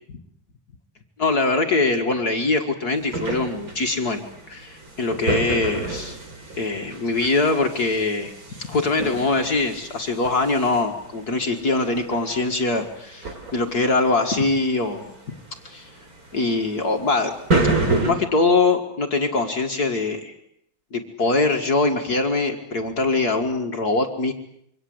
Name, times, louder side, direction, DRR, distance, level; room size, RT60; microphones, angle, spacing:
voice 1, 1.2-6.2 6.6-15.3 15.6-15.9 16.3-17.3 18.0-20.3 20.9-24.3, left 3 dB, 50° left, 4 dB, 2.3 m, -23 dB
sound 1, 3.0-18.1, right 2 dB, 45° right, 4.3 m, -29 dB
26.5 x 24.5 x 7.9 m, 0.73 s
omnidirectional pair, 2.2 m